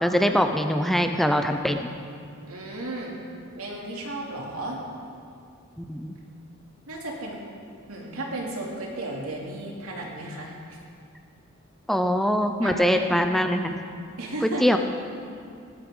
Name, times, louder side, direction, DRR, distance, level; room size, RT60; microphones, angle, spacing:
voice 1, 0.0-1.9 5.9-6.2 11.9-13.7 14.4-14.8, equal, ahead, 5 dB, 0.5 m, -23 dB
voice 2, 2.5-3.2 3.6-4.8 6.9-7.4 7.9-10.5 12.6-13.0 14.2-14.8, right 2 dB, 90° right, -2 dB, 2.7 m, -34 dB
17.5 x 13.0 x 3.8 m, 2.4 s
head